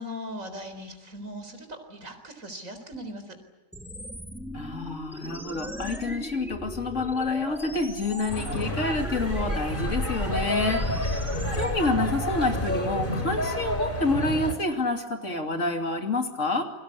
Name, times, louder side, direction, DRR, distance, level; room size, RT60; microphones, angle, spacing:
voice 1, 0.0-3.4, equal, 75° right, 7 dB, 4.5 m, -39 dB
sound 1, 3.7-11.7, equal, ahead, 2.2 m, -38 dB
voice 2, 4.5-11.2 11.5-16.6, left 2 dB, 65° left, 4 dB, 3.1 m, -28 dB
sound 2, 8.3-14.5, left 1 dB, 40° left, 4.3 m, -29 dB
28.5 x 23.0 x 8.3 m, 1.1 s
omnidirectional pair, 1.4 m